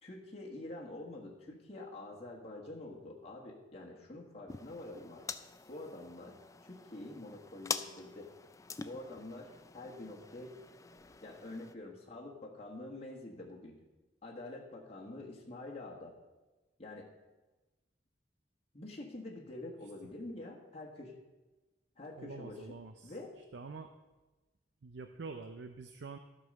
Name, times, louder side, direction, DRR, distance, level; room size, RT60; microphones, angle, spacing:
voice 1, 0.0-5.3 5.7-8.3 8.8-10.5 11.2-13.8 14.2-16.1 16.8-17.1 18.7-21.1 22.0-22.7 23.0-23.3, left 2 dB, 35° left, -2 dB, 1.4 m, -46 dB
sound 1, 4.5-11.8, left 5 dB, 20° left, 0.4 m, -45 dB
voice 2, 22.2-23.1 23.5-23.9 24.8-26.2, right 4 dB, 75° right, 7 dB, 0.6 m, -46 dB
12.5 x 5.4 x 6.4 m, 1.1 s
head